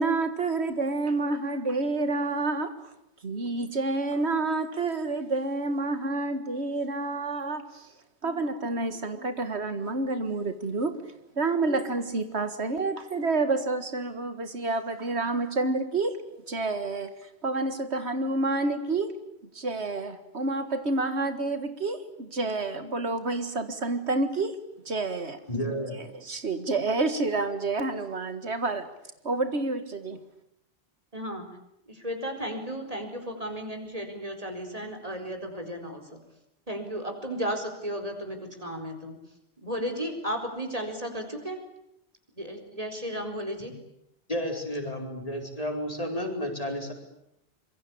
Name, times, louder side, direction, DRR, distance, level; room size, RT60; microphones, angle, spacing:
voice 1, 0.0-2.7 3.2-7.9 8.2-10.9 11.4-16.2 16.5-17.1 17.4-19.2 19.5-24.6 24.9-25.4 26.0-28.9 29.2-30.2, right 3 dB, 80° right, 10 dB, 2.1 m, -29 dB
voice 2, 25.5-26.0 44.3-46.9, equal, 35° left, 3 dB, 4.6 m, -31 dB
voice 3, 31.1-31.5 32.0-36.0 36.7-39.1 39.6-41.6 42.4-43.7, equal, 35° right, 4 dB, 4.4 m, -34 dB
26.0 x 23.0 x 8.6 m, 0.79 s
omnidirectional pair, 1.1 m